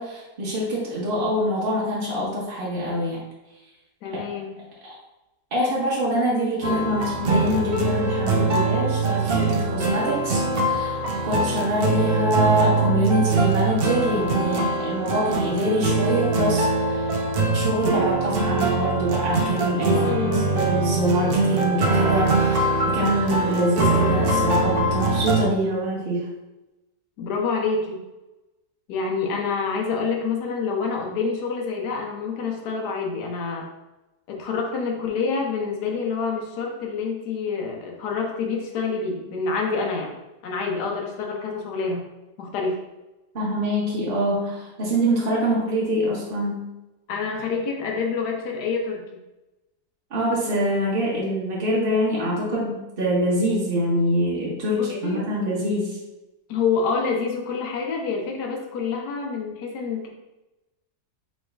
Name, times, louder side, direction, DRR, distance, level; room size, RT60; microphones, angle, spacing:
voice 1, 0.0-3.2 4.1-4.3 4.8-5.0 5.5-17.1 17.5-26.3 43.3-46.6 50.1-56.0, equal, 40° right, -6 dB, 1.0 m, -25 dB
voice 2, 4.0-4.6 19.9-20.5 27.2-28.0 28.9-33.7 34.3-40.1 40.4-42.1 42.4-42.8 47.1-49.0 54.6-55.2 56.5-60.1, left 5 dB, 75° left, 0 dB, 1.3 m, -27 dB
sound 1, 6.6-25.4, right 3 dB, 65° right, 0.5 m, -23 dB
3.4 x 3.1 x 4.4 m, 1.0 s
omnidirectional pair, 1.8 m